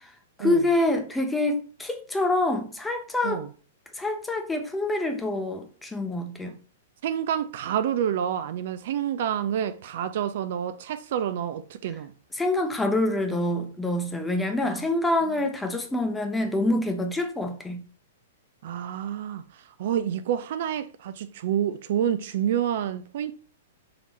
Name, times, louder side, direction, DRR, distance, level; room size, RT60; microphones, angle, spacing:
voice 1, 0.4-3.4 4.0-6.5 12.4-17.8, left 2 dB, 5° left, 0.7 m, -26 dB
voice 2, 7.0-12.1 14.6-14.8 18.6-23.3, right 9 dB, 50° right, 0.3 m, -28 dB
3.9 x 2.9 x 4.2 m
figure-of-eight pair, 105°, 0 cm